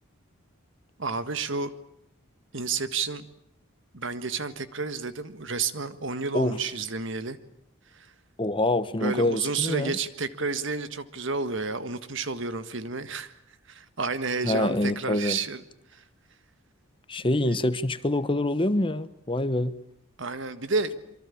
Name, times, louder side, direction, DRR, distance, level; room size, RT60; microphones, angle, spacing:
voice 1, 1.0-1.7 2.5-3.3 3.9-7.4 7.9-8.1 9.0-13.4 13.7-15.6 15.9-16.0 17.5-17.6 20.2-21.0, right 4 dB, 60° right, 12 dB, 1.7 m, -30 dB
voice 2, 8.4-9.9 14.4-15.4 17.1-19.7, left 1 dB, 25° left, 13 dB, 1.0 m, -25 dB
26.5 x 24.0 x 8.5 m, 0.77 s
head